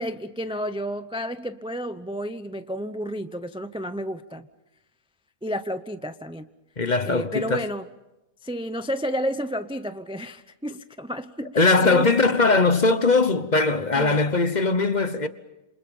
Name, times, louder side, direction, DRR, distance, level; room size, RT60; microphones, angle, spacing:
voice 1, 0.0-4.5 5.4-6.5 7.0-7.9 8.4-12.1 13.9-14.2, equal, 10° right, 0.3 m, -31 dB
voice 2, 6.8-7.6 11.5-15.3, left 3 dB, 35° left, 1.1 m, -20 dB
28.0 x 27.5 x 5.5 m
omnidirectional pair, 1.6 m